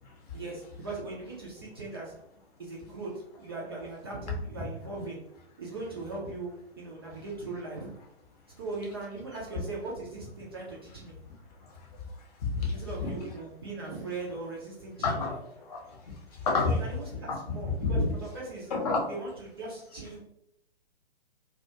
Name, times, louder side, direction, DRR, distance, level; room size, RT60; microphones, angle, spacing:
voice 1, 0.3-2.1 2.6-3.1 3.4-5.2 5.6-6.5 6.8-7.9 8.6-11.1 12.7-15.2 16.6-18.7 19.1-20.2, right 3 dB, 25° right, -4 dB, 0.4 m, -39 dB
voice 2, 12.4-12.7 13.0-13.1 15.0-15.4 15.7-15.8 16.4-16.8 17.3-17.4 17.8-18.1 18.7-19.0, left 3 dB, 40° left, 0 dB, 0.7 m, -27 dB
2.3 x 2.2 x 2.7 m, 0.76 s
figure-of-eight pair, 125°, 31 cm